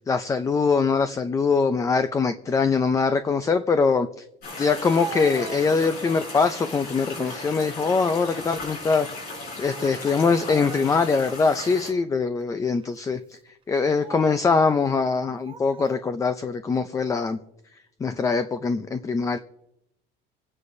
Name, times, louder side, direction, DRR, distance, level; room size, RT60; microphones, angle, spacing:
voice 1, 0.1-4.1 4.6-9.1 9.6-13.4 13.7-17.4 18.0-19.4, left 4 dB, 15° left, 10 dB, 0.4 m, -23 dB
sound 1, 4.4-11.9, left 2 dB, 50° left, 4.6 m, -37 dB
Speech, 4.6-6.3 6.8-7.3 7.8-9.0 9.3-9.5 10.3-11.3 11.8-11.9 12.7-13.0 13.8-14.5 15.3-16.0, right 5 dB, 25° right, 0.9 m, -40 dB
26.5 x 9.7 x 2.7 m, 0.81 s
cardioid pair, 175°, 20 cm